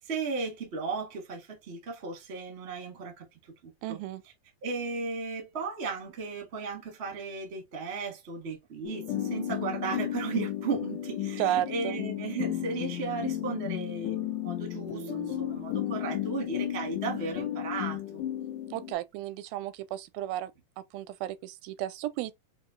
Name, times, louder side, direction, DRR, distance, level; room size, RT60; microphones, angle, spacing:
voice 1, 0.0-3.2 3.9-4.0 4.6-18.2, right 4 dB, 65° right, 0.6 m, -35 dB
voice 2, 3.8-4.2 11.4-12.0 18.7-20.5 20.8-22.4, right 13 dB, 85° right, 2.4 m, -33 dB
sound 1, 8.8-18.9, left 11 dB, 75° left, 2.0 m, -34 dB
6.7 x 2.5 x 2.5 m
omnidirectional pair, 4.1 m